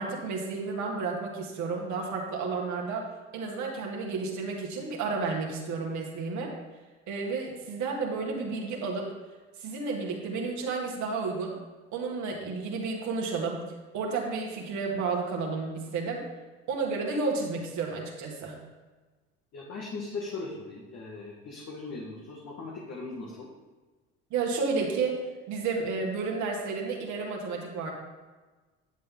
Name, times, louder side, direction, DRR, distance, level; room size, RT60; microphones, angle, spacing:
voice 1, 0.0-3.0 3.3-6.5 7.1-9.1 9.6-11.5 11.9-13.6 13.9-16.2 16.7-18.6 24.3-25.2 25.5-27.9, right 4 dB, 65° right, -1 dB, 2.1 m, -31 dB
voice 2, 19.5-23.5, left 3 dB, 55° left, -3 dB, 2.0 m, -39 dB
10.0 x 7.6 x 3.8 m, 1.3 s
hypercardioid pair, 65°, 32 cm